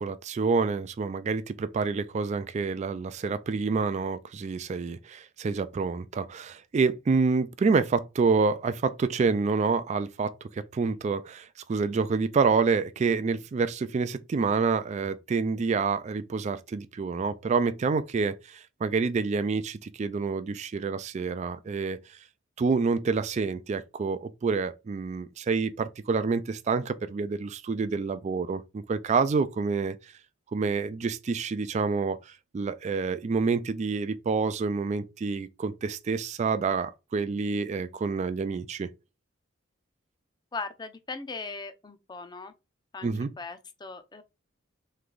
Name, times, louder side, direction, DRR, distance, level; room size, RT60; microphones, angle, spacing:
voice 1, 0.0-22.2 22.6-30.1 30.5-38.9 43.0-43.3, right 4 dB, 35° right, 0.3 m, -28 dB
voice 2, 40.5-42.5 42.9-44.2, left 4 dB, 20° left, 0.5 m, -39 dB
3.4 x 3.2 x 3.7 m
head